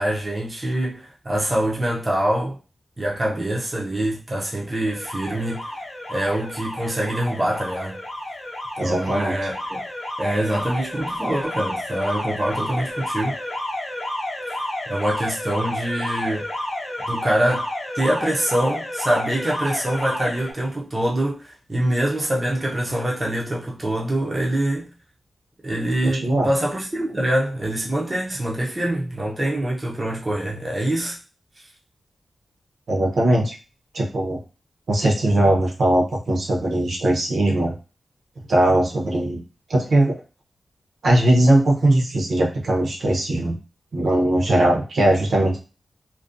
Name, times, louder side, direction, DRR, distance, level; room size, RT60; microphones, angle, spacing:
voice 1, 0.0-2.6 3.0-5.7 6.1-8.0 8.8-9.8 10.2-13.4 14.9-16.5 17.1-17.7 18.0-24.9 25.6-31.2, right 1 dB, 20° right, 0.4 m, -24 dB
Alarm, 4.8-20.5, left 1 dB, 45° left, 0.6 m, -30 dB
voice 2, 8.8-9.3 26.2-26.5 32.9-33.5 33.9-34.4 34.9-37.7 38.5-39.4 39.7-40.2 41.0-43.6 43.9-45.6, right 1 dB, 65° right, 0.7 m, -19 dB
2.4 x 2.1 x 2.4 m
wide cardioid pair, 170°, 0 cm